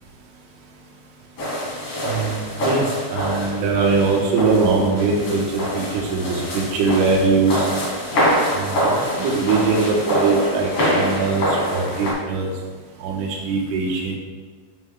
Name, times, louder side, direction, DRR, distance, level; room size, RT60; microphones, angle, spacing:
sound 1, 1.4-12.1, equal, 55° left, 1.6 m, -25 dB
voice 1, 2.0-7.7 8.5-12.5 13.0-14.2, right 4 dB, 85° right, -1 dB, 3.5 m, -21 dB
12.5 x 5.6 x 2.3 m, 1.5 s
omnidirectional pair, 5.4 m